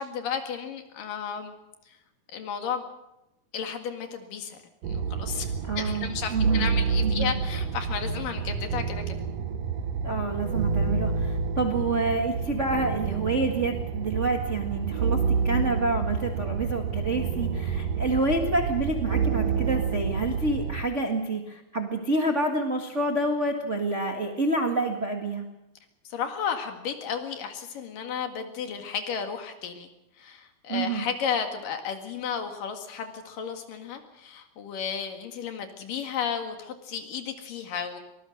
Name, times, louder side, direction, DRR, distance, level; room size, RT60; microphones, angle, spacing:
voice 1, 0.0-1.5 2.3-2.9 3.5-4.6 5.1-9.2 26.1-29.9 30.2-38.0, left 7 dB, 65° left, 5 dB, 3.4 m, -33 dB
sound 1, 4.8-20.8, right 5 dB, 85° right, 1.4 m, -28 dB
voice 2, 5.7-6.7 7.0-7.3 10.0-25.4 30.7-31.1, right 2 dB, 55° right, 2 dB, 0.8 m, -28 dB
24.0 x 19.0 x 6.4 m, 0.91 s
omnidirectional pair, 4.4 m